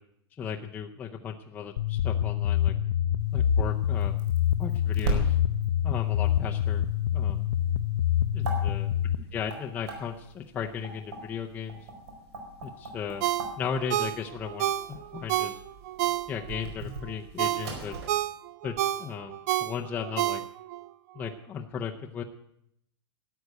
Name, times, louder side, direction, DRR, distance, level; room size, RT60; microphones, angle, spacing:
voice 1, 0.4-2.7 3.3-4.1 4.6-5.4 5.8-6.9 7.1-7.5 8.3-8.9 9.3-11.8 12.6-13.2 13.6-15.6 16.3-17.9 18.6-20.4 21.2-22.2, left 7 dB, 10° left, 1 dB, 0.6 m, -36 dB
sound 1, 1.8-9.2, left 10 dB, 60° left, 0.6 m, -26 dB
sound 2, 3.2-18.1, right 2 dB, 75° right, 4.7 m, -39 dB
Ringtone, 13.2-16.7 17.1-20.8 21.2-21.3, right 14 dB, 35° right, 0.4 m, -30 dB
13.0 x 8.0 x 9.3 m, 0.74 s
supercardioid pair, 170°, 14 cm